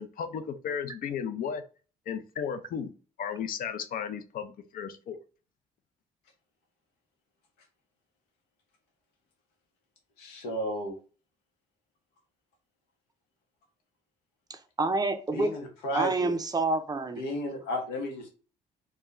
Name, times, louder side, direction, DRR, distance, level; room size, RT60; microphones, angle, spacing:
voice 1, 0.0-1.6 2.1-2.9 3.2-5.2, left 7 dB, 55° left, 0.5 m, -34 dB
voice 2, 10.2-10.9 15.3-16.3 17.2-18.3, equal, 80° left, 0.8 m, -33 dB
voice 3, 14.5-15.5 15.9-17.2, right 3 dB, 25° right, 0.4 m, -28 dB
2.1 x 2.1 x 3.5 m
hypercardioid pair, 55°, 17 cm